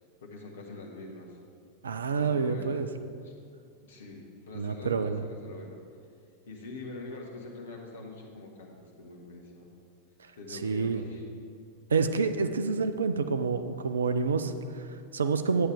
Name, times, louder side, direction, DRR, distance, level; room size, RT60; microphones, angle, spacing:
voice 1, 0.2-1.4 2.2-2.8 3.2-3.3 3.8-5.8 6.5-9.7 10.4-11.2, left 2 dB, 60° left, 1 dB, 1.5 m, -44 dB
voice 2, 1.8-2.9 4.5-5.2 10.5-11.0 11.9-15.7, right 5 dB, 70° right, 9 dB, 0.5 m, -28 dB
11.0 x 8.7 x 3.6 m, 2.3 s
figure-of-eight pair, 90°, 0 cm